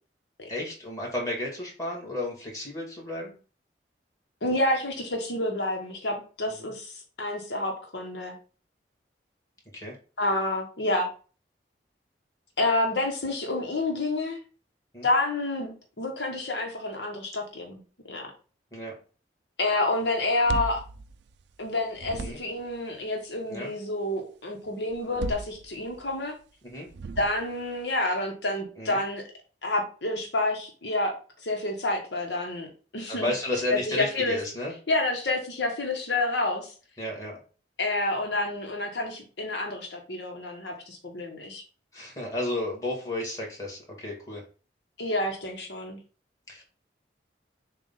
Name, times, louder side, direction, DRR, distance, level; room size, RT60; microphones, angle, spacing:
voice 1, 0.5-3.4 6.5-6.7 9.7-10.0 14.9-15.1 18.7-18.9 22.1-22.4 23.5-23.7 26.6-26.9 28.8-29.0 33.1-34.7 37.0-37.4 41.9-44.4 46.5-46.6, left 1 dB, 20° left, -2 dB, 2.2 m, -33 dB
voice 2, 4.4-8.4 10.2-11.1 12.6-14.4 15.0-17.8 18.1-18.3 19.6-20.8 21.6-26.3 27.2-29.2 29.6-33.3 33.7-34.4 34.9-36.7 37.8-41.6 45.0-46.0, left 2 dB, 75° left, 2 dB, 1.2 m, -29 dB
sound 1, 20.2-21.7 22.0-22.7 24.9-26.1 26.9-27.7, right 3 dB, 75° right, 0.4 m, -36 dB
7.0 x 2.5 x 5.6 m, 0.38 s
head